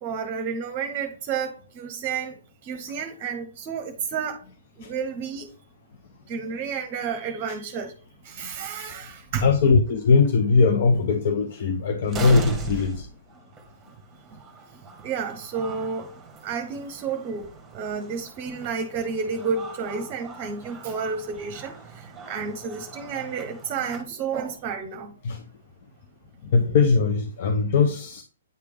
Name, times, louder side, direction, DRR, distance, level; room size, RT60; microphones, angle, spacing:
voice 1, 0.0-4.4 4.8-5.5 6.3-7.9 8.2-9.5 14.3-14.4 15.0-16.1 16.4-25.1, right 6 dB, 35° right, 0.8 m, -31 dB
sound 1, 8.8-8.9 9.9-10.0 10.2-10.3 11.6-11.7 12.1-24.0, right 3 dB, 15° right, 1.3 m, -39 dB
voice 2, 9.4-13.1 25.2-25.4 26.5-28.2, left 4 dB, 55° left, 0.7 m, -20 dB
9.1 x 3.3 x 3.4 m
hypercardioid pair, 130°, 0 cm